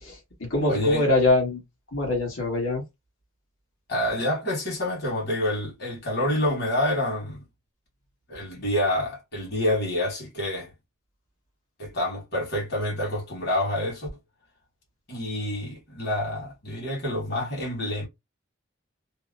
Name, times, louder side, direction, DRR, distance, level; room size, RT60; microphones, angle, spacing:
voice 1, 0.0-1.6 1.9-2.8, left 2 dB, 85° left, 1.4 m, -24 dB
voice 2, 0.7-1.0 3.9-7.4 8.3-10.7 11.8-14.1 15.1-18.1, left 1 dB, 55° left, 1.5 m, -27 dB
2.8 x 2.1 x 2.4 m
head